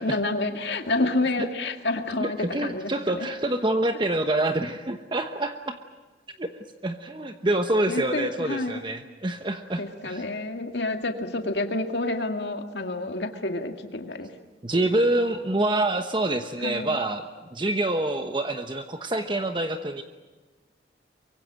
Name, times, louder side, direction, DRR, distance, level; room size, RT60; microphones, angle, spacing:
voice 1, 0.0-3.3 7.9-8.8 9.8-14.3 16.6-17.0, left 2 dB, 75° left, 5 dB, 2.1 m, -29 dB
voice 2, 2.2-5.8 6.4-6.5 6.8-10.2 14.6-20.0, right 1 dB, 25° right, 7 dB, 1.1 m, -26 dB
24.0 x 23.5 x 7.6 m, 1.3 s
head